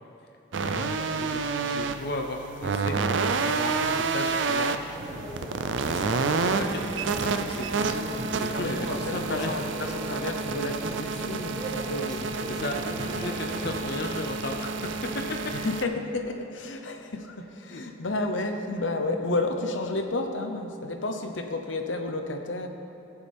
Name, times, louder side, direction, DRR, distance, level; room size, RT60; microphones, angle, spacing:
sound 1, 0.5-15.8, right 4 dB, 85° right, 0.5 m, -29 dB
voice 1, 0.6-3.0 3.4-5.0 5.8-9.5 12.5-14.7 17.7-17.8, left 2 dB, 55° left, 3 dB, 0.6 m, -36 dB
sound 2, 4.9-15.7, right 1 dB, 20° right, 0.9 m, -39 dB
voice 2, 8.5-12.5 15.5-22.7, left 2 dB, 90° left, 5 dB, 0.9 m, -31 dB
18.0 x 7.0 x 3.5 m, 2.9 s
head